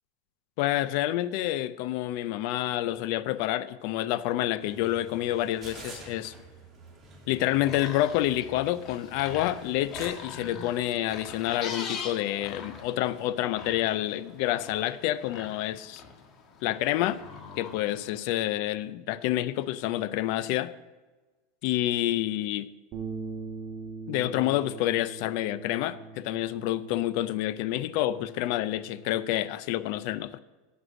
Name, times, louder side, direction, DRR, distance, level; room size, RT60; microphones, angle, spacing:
voice 1, 0.6-6.3 7.3-16.0 16.6-17.2 17.6-20.7 21.6-22.7 24.1-30.4, left 14 dB, 60° left, 0.4 m, -28 dB
sound 1, 4.6-10.1, right 3 dB, 15° right, 2.7 m, -49 dB
sound 2, 7.4-18.2, left 5 dB, 40° left, 1.3 m, -42 dB
sound 3, 22.9-29.2, right 4 dB, 40° right, 1.6 m, -42 dB
8.0 x 7.7 x 6.3 m
supercardioid pair, 125°, 0 cm